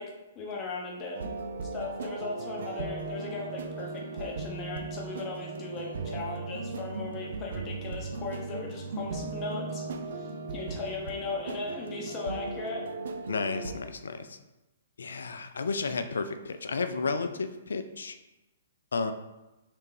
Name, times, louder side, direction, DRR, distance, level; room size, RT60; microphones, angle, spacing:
voice 1, 0.0-1.3 1.7-9.8 10.2-12.9, left 3 dB, 25° left, -1 dB, 0.7 m, -38 dB
sound 1, 1.1-13.8, right 3 dB, 60° right, 0.4 m, -37 dB
voice 2, 13.3-14.4 15.0-18.2 18.9-19.1, left 4 dB, 70° left, 9 dB, 0.3 m, -32 dB
3.3 x 3.3 x 3.2 m, 1.0 s
figure-of-eight pair, 120°, 0 cm